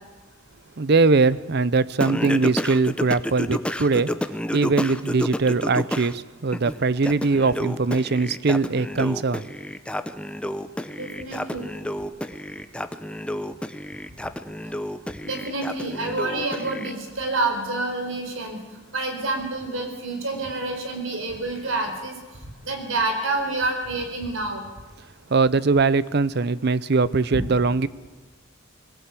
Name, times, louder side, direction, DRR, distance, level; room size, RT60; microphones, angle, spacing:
voice 1, 0.8-4.1 4.5-9.5 25.3-27.9, right 4 dB, 55° right, 18 dB, 0.6 m, -21 dB
Singing, 2.0-6.1 6.5-16.9, equal, 5° left, 0.7 m, -30 dB
voice 2, 10.9-11.6 15.2-18.6 18.9-22.2 22.6-24.6 27.3-27.5, right 2 dB, 85° right, 5 dB, 4.4 m, -28 dB
21.5 x 17.0 x 8.4 m, 1.3 s
head